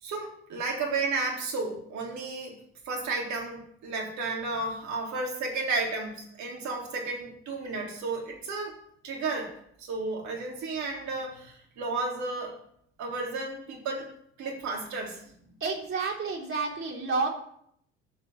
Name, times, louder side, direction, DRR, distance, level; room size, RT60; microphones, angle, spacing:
voice 1, 0.0-2.5 2.9-8.8 9.0-9.5 9.8-12.5 13.0-14.1 14.4-15.2, right 3 dB, 55° right, 0 dB, 3.9 m, -32 dB
voice 2, 15.6-17.3, right 4 dB, 40° right, -2 dB, 4.0 m, -30 dB
11.5 x 5.5 x 7.5 m, 0.68 s
hypercardioid pair, 60°, 33 cm